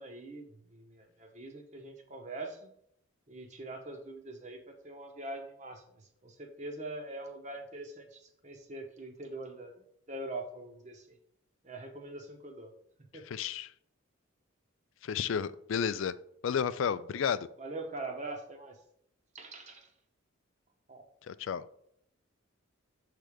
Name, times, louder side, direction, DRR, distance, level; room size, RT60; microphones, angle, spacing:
voice 1, 0.0-2.8 3.3-9.8 10.1-11.2 11.6-12.7 13.0-13.2 17.6-18.7 19.3-19.9 20.9-21.0, right 2 dB, 35° right, 5 dB, 1.0 m, -43 dB
voice 2, 13.3-13.7 15.0-16.2 16.4-17.5 21.3-21.6, left 7 dB, 65° left, 15 dB, 0.3 m, -32 dB
7.5 x 3.3 x 5.0 m, 0.69 s
head